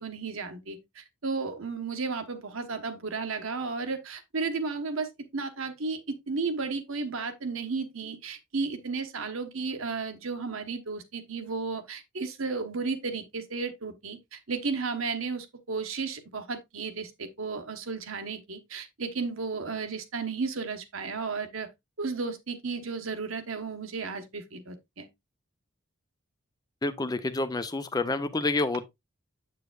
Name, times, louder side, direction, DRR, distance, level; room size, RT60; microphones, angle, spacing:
voice 1, 0.0-21.7 22.0-25.1, right 4 dB, 75° right, 1.2 m, -33 dB
voice 2, 26.8-28.9, left 2 dB, 20° left, 0.5 m, -28 dB
7.8 x 6.8 x 2.4 m
head